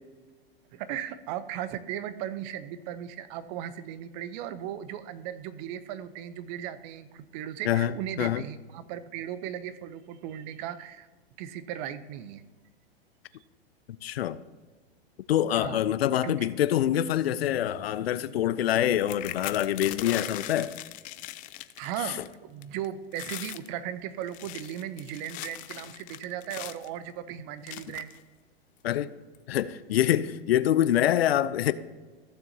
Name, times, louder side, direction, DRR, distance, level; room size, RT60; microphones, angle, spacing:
voice 1, 0.7-11.1 11.4-12.4 15.5-15.8 16.2-16.5 21.8-28.1, right 10 dB, 45° right, 0.8 m, -37 dB
voice 2, 7.6-8.4 13.9-14.4 15.3-20.7 22.0-22.2 28.8-29.1 29.5-31.7, left 11 dB, 70° left, 0.6 m, -25 dB
sound 1, 19.0-22.3 22.6-22.9 23.1-23.7 24.2-26.9 27.7-28.2 28.9-29.0 29.3-29.6, left 16 dB, 25° left, 0.4 m, -40 dB
15.0 x 7.0 x 2.8 m
hypercardioid pair, 110°, 31 cm